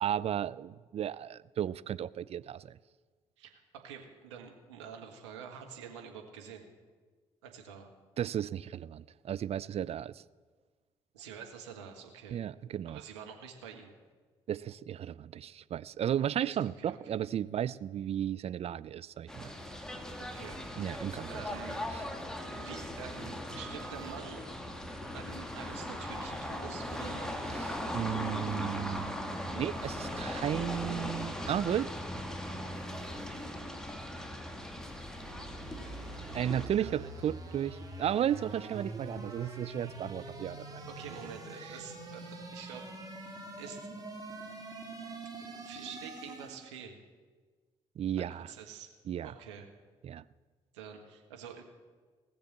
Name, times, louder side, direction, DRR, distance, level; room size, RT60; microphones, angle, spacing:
voice 1, 0.0-2.8 8.2-10.2 12.3-13.0 14.5-19.5 20.8-21.4 21.9-22.0 27.6-31.9 36.3-40.9 41.7-41.8 48.0-48.5 49.1-49.3 50.0-50.2, right 10 dB, 45° right, 18 dB, 0.4 m, -34 dB
voice 2, 3.4-6.7 7.4-7.9 11.1-12.4 12.8-13.9 16.4-17.1 20.2-21.0 21.3-21.8 22.6-24.4 25.1-27.3 36.7-37.1 40.9-42.9 43.6-43.9 45.0-45.2 45.5-47.0 48.2-48.9 49.2-49.7 50.7-51.6, right 7 dB, 80° right, 3 dB, 1.5 m, -47 dB
sound 1, 19.3-36.7, left 1 dB, 5° left, 2.1 m, -39 dB
sound 2, 34.7-46.7, right 2 dB, 25° right, 3.5 m, -45 dB
18.5 x 7.0 x 7.4 m, 1.4 s
hypercardioid pair, 45°, 15 cm